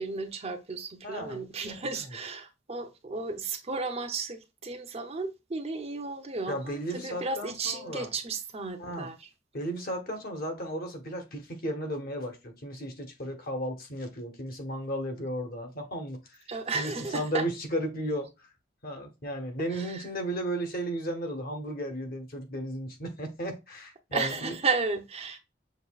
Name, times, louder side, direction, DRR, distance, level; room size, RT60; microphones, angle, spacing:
voice 1, 0.0-9.2 16.5-17.4 19.8-20.0 24.1-25.4, right 4 dB, 35° right, 0.6 m, -33 dB
voice 2, 1.0-2.2 6.5-8.1 8.8-9.1 9.5-18.5 18.8-24.6, equal, 55° left, 1.2 m, -35 dB
6.6 x 2.8 x 2.3 m
head